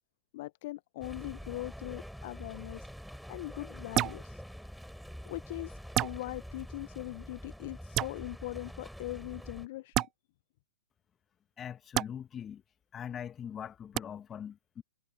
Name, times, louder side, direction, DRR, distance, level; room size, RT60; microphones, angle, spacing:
voice 1, 0.3-2.9 3.3-4.4 5.2-10.1, left 18 dB, 50° left, 1.0 m, -41 dB
sound 1, 1.0-9.7, equal, ahead, 3.6 m, -46 dB
sound 2, 3.9-4.2 5.9-6.2 7.9-8.1 9.9-10.1 11.9-12.1 13.9-14.0, right 14 dB, 30° right, 0.6 m, -28 dB
voice 2, 11.6-12.6 12.9-14.8, left 8 dB, 20° left, 1.5 m, -42 dB
figure-of-eight pair, 110°, 0 cm